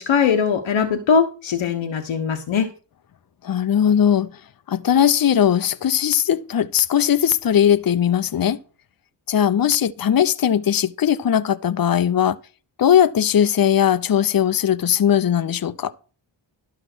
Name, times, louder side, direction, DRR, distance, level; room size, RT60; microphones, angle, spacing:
voice 1, 0.0-2.7, left 6 dB, 80° left, 1.3 m, -20 dB
voice 2, 3.4-4.3 4.7-8.6 9.3-12.4 12.8-15.9, left 9 dB, 50° left, 0.8 m, -19 dB
12.0 x 5.7 x 6.1 m
cardioid pair, 45°, 46 cm